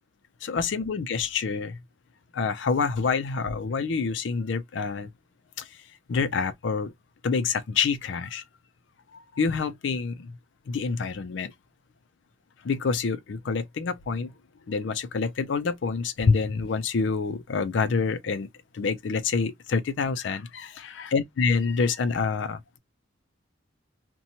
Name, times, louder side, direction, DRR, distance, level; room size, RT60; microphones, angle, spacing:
voice 1, 0.4-1.8 2.3-5.1 5.6-5.7 6.1-6.9 7.2-8.4 9.1-10.3 10.7-11.5 12.6-14.3 14.7-18.5 18.7-22.8, left 5 dB, 65° left, 0.4 m, -27 dB
2.8 x 2.2 x 2.7 m
head